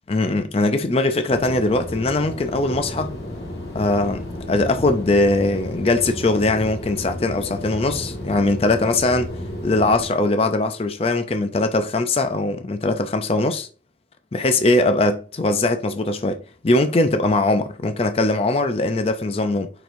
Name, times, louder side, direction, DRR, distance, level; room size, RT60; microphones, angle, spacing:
voice 1, 0.1-3.1 3.7-9.3 9.6-13.7 14.3-19.7, left 2 dB, 30° left, 0.4 m, -21 dB
sound 1, 1.3-10.1, left 1 dB, 60° left, 1.8 m, -32 dB
6.9 x 5.9 x 2.7 m
head